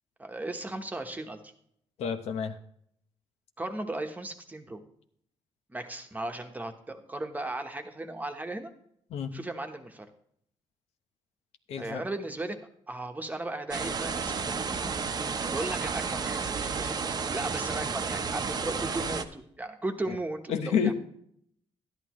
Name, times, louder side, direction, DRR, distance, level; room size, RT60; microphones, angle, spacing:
voice 1, 0.2-1.5 3.6-4.8 5.7-8.7 9.3-10.1 11.8-12.6 12.9-14.9 15.5-20.9, right 2 dB, 15° right, 5 dB, 1.2 m, -36 dB
voice 2, 2.0-2.6 9.1-9.3 11.7-12.0 20.1-20.2 20.5-20.9, left 7 dB, 75° left, 6 dB, 1.0 m, -29 dB
sound 1, 13.7-19.2, right 5 dB, 40° right, 0.8 m, -32 dB
12.5 x 10.5 x 3.1 m, 0.69 s
cardioid pair, 100°, 11 cm